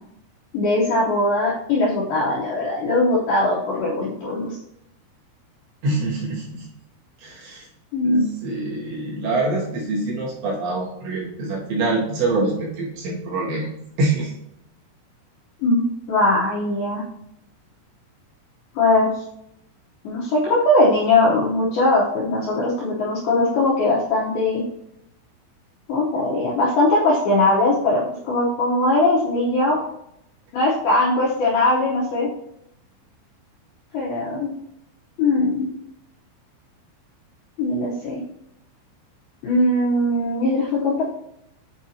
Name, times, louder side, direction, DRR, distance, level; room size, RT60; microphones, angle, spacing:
voice 1, 0.5-4.6 7.9-8.2 15.6-17.0 18.8-19.2 20.0-24.6 25.9-29.8 30.5-32.3 33.9-34.5 35.2-35.7 37.6-38.2 39.4-41.0, left 2 dB, 75° left, -5 dB, 2.2 m, -20 dB
voice 2, 5.8-6.7 7.2-7.7 8.0-13.7 14.0-14.3, right 2 dB, 65° right, -6 dB, 4.0 m, -25 dB
9.0 x 4.8 x 2.8 m, 0.80 s
omnidirectional pair, 5.8 m